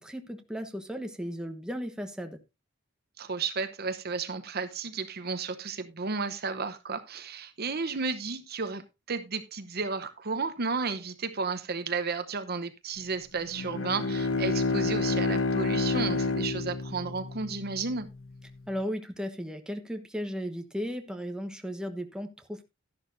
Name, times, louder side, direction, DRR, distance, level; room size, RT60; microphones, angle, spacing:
voice 1, 0.0-2.4 18.7-22.6, equal, 5° right, 1.2 m, -35 dB
voice 2, 3.2-18.1, right 4 dB, 50° right, 0.9 m, -33 dB
Bowed string instrument, 13.5-18.1, left 3 dB, 70° left, 0.8 m, -29 dB
12.5 x 11.0 x 2.6 m
head